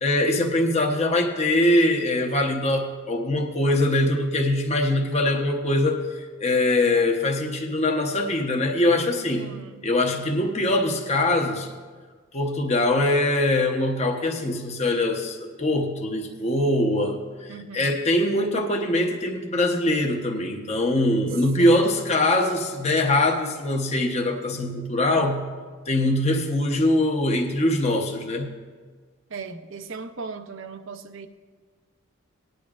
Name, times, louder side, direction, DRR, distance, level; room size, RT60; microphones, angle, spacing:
voice 1, 0.0-9.5 9.8-11.7 12.3-17.2 17.4-25.4 25.9-28.5, left 1 dB, 30° left, 2 dB, 0.9 m, -23 dB
voice 2, 9.4-9.8 17.5-17.9 21.6-21.9 29.3-31.3, right 4 dB, 65° right, 9 dB, 0.6 m, -38 dB
19.0 x 10.5 x 2.5 m, 1.5 s
head